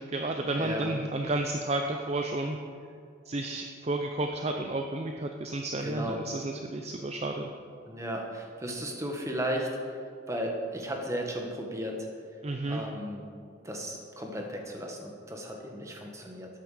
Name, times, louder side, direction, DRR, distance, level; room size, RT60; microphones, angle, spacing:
voice 1, 0.0-2.6 3.3-7.5 12.4-12.8, right 2 dB, 30° right, 4 dB, 0.5 m, -32 dB
voice 2, 0.6-0.9 5.8-6.2 7.9-10.0 10.3-12.1 12.7-13.2 13.6-16.5, equal, 15° right, 1 dB, 1.4 m, -35 dB
13.0 x 9.2 x 5.0 m, 2.4 s
head